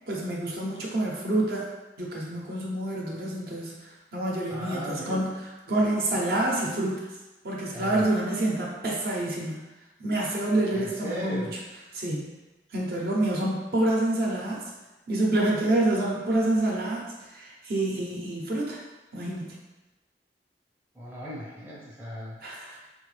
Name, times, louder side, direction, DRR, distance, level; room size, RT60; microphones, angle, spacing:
voice 1, 0.1-1.7 2.0-7.1 7.4-9.6 10.0-11.5 11.9-12.3 12.7-14.6 15.1-18.8 19.1-19.6 22.4-22.8, right 1 dB, 55° right, -3 dB, 0.6 m, -27 dB
voice 2, 4.5-5.3 7.7-8.1 10.7-11.5 20.9-22.4 22.8-22.9, equal, 10° right, -6 dB, 0.5 m, -37 dB
3.5 x 2.3 x 3.2 m, 1.1 s
head